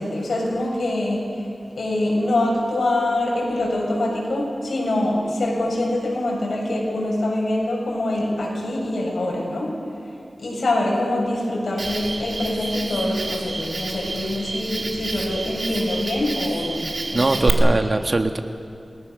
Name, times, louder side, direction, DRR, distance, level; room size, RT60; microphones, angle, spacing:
voice 1, 0.0-1.5 1.8-9.7 10.4-17.9, left 1 dB, 85° left, -3 dB, 6.8 m, -24 dB
Cricket, 11.8-17.5, right 3 dB, 70° right, 2.3 m, -29 dB
voice 2, 17.1-18.4, right 2 dB, 45° right, 6 dB, 1.6 m, -21 dB
29.0 x 20.5 x 6.5 m, 2.5 s
wide cardioid pair, 65°, 0 cm